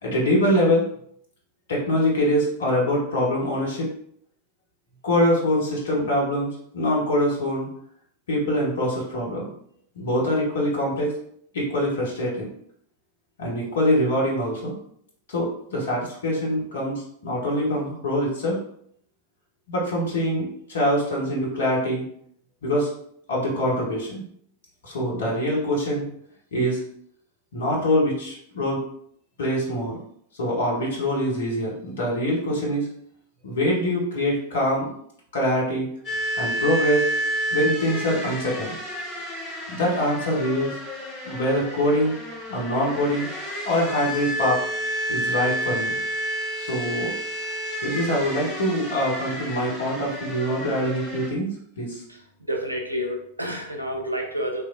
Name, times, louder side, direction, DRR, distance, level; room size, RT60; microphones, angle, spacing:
voice 1, 0.0-0.8 1.7-3.9 5.0-7.7 8.3-9.5 10.0-11.1 11.5-12.5 13.4-14.7 15.3-18.6 19.7-22.0 22.6-22.9 23.3-24.2 24.8-26.1 26.5-26.8 27.5-28.8 29.4-30.0 30.4-32.9 33.4-34.9 35.3-35.9 36.4-37.0 37.5-38.8 39.7-40.8 41.2-42.1 42.5-43.3 43.6-44.6 45.1-45.9 46.6-47.1 47.8-52.0, equal, 65° left, -3 dB, 0.8 m, -24 dB
sound 1, 36.0-51.3, equal, 25° left, 1.3 m, -30 dB
voice 2, 52.5-54.6, equal, 85° right, 2 dB, 0.5 m, -29 dB
3.0 x 2.5 x 2.4 m, 0.67 s
figure-of-eight pair, 90°, 0 cm